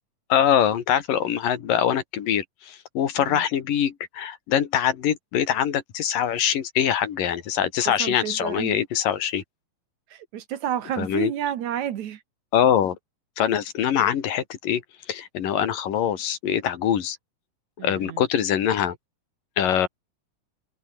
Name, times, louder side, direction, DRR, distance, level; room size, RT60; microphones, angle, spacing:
voice 1, 0.3-9.4 11.0-11.3 12.5-13.0 13.4-14.8 15.1-17.2 17.8-19.0 19.6-19.9, left 9 dB, 85° left, 3.8 m, -23 dB
voice 2, 7.9-8.8 10.1-12.2 17.8-18.2, right 10 dB, 65° right, 2.5 m, -30 dB
omnidirectional pair, 3.8 m